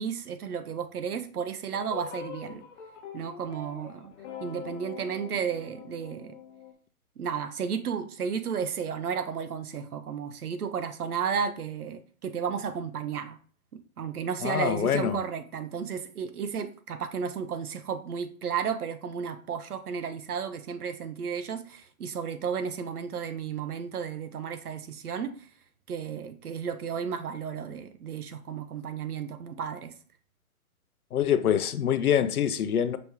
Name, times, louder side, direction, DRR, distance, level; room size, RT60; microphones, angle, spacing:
voice 1, 0.0-2.6 3.1-4.1 4.4-6.4 7.2-13.4 13.7-25.3 25.9-29.9, right 7 dB, 80° right, 0.8 m, -33 dB
sound 1, 1.7-6.7, left 8 dB, 50° left, 0.9 m, -44 dB
voice 2, 14.4-15.2 31.1-33.0, left 9 dB, 80° left, 0.6 m, -25 dB
5.3 x 2.9 x 3.4 m
hypercardioid pair, 140°, 44 cm